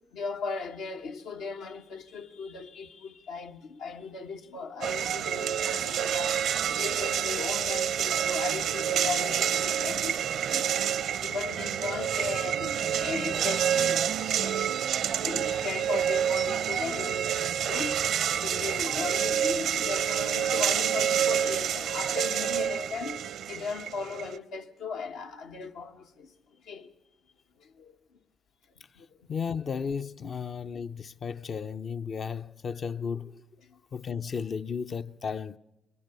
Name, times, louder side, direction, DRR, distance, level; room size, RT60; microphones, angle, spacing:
voice 1, 0.1-10.7 11.2-14.1 14.4-18.0 18.4-26.3 26.6-26.9 27.6-28.0 28.9-29.3 30.2-30.3 33.6-33.8, left 4 dB, 80° left, 1.3 m, -37 dB
Casino Noise, 4.8-24.4, right 9 dB, 75° right, 0.6 m, -28 dB
voice 2, 29.3-33.5 33.9-35.6, left 6 dB, 55° left, 0.6 m, -34 dB
22.0 x 19.5 x 6.8 m
supercardioid pair, 50°, 0 cm